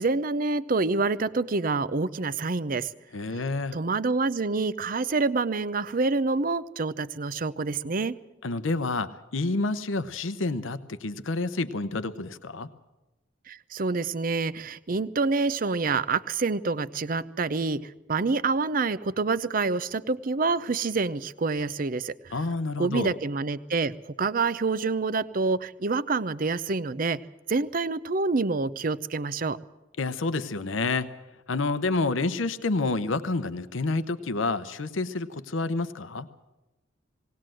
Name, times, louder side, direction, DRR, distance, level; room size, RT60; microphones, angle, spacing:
voice 1, 0.0-2.9 3.7-8.1 13.5-22.3 22.8-27.2 27.5-29.6, right 3 dB, 45° right, 16 dB, 0.6 m, -27 dB
voice 2, 3.1-3.8 8.4-12.7 22.3-23.2 30.0-31.1 31.5-36.3, left 3 dB, 85° left, 13 dB, 0.8 m, -29 dB
19.0 x 19.0 x 7.6 m, 1.0 s
head